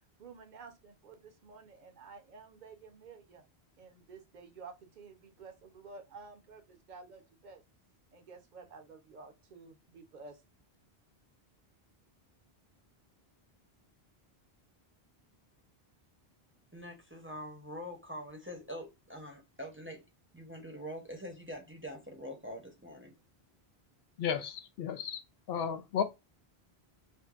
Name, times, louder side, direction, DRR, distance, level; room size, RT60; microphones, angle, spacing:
voice 1, 0.2-3.4 3.8-7.6 8.1-10.4, right 4 dB, 50° right, 0.8 m, -52 dB
voice 2, 16.7-20.0 20.3-23.1, equal, 15° right, 0.7 m, -44 dB
voice 3, 24.2-25.2 25.5-26.0, left 7 dB, 70° left, 0.8 m, -33 dB
5.1 x 2.2 x 2.4 m
omnidirectional pair, 1.0 m